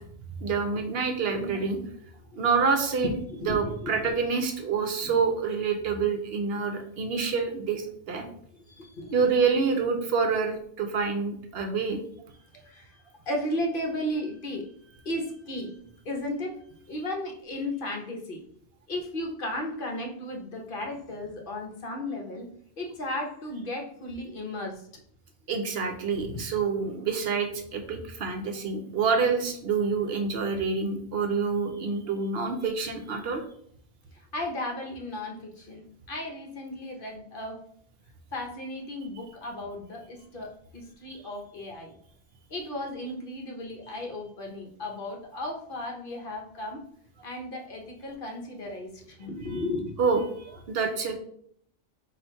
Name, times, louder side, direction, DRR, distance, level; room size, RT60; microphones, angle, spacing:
voice 1, 0.4-1.8 2.4-3.1 3.5-8.3 9.1-12.0 25.5-33.4 41.1-41.2 50.0-51.1, right 5 dB, 65° right, 5 dB, 0.8 m, -27 dB
voice 2, 3.0-4.1 4.8-5.2 8.5-9.2 12.5-18.4 18.9-22.5 22.8-24.9 26.2-26.5 34.1-37.6 38.3-41.9 42.5-46.8 47.2-49.9, left 1 dB, 50° left, 1 dB, 0.8 m, -35 dB
4.1 x 2.5 x 4.5 m, 0.65 s
omnidirectional pair, 1.2 m